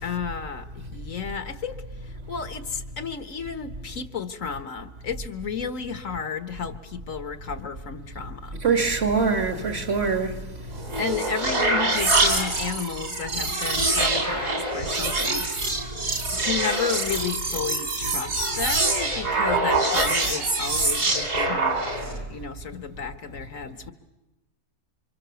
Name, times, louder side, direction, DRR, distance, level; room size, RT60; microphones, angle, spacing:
voice 1, 0.0-8.6 11.0-15.6 16.3-23.9, left 6 dB, 60° left, 1.6 m, -33 dB
voice 2, 8.6-10.5 10.7-10.8, right 5 dB, 45° right, 1.9 m, -23 dB
sound 1, 10.7-22.2, right 2 dB, 65° right, 4.1 m, -25 dB
28.5 x 25.5 x 7.0 m
omnidirectional pair, 1.6 m